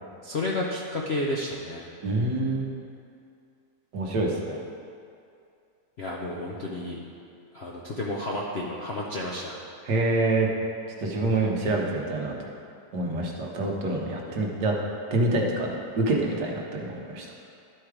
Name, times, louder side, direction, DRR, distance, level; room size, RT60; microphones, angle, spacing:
voice 1, 0.2-1.9 6.0-7.0 7.5-9.6 14.3-14.4, left 1 dB, 60° left, -3 dB, 0.7 m, -31 dB
voice 2, 2.0-2.7 3.9-4.6 9.9-10.5 11.0-12.4 12.9-14.7 15.1-17.3, right 2 dB, 75° right, -1 dB, 1.7 m, -26 dB
11.5 x 4.7 x 4.8 m, 2.5 s
omnidirectional pair, 1.9 m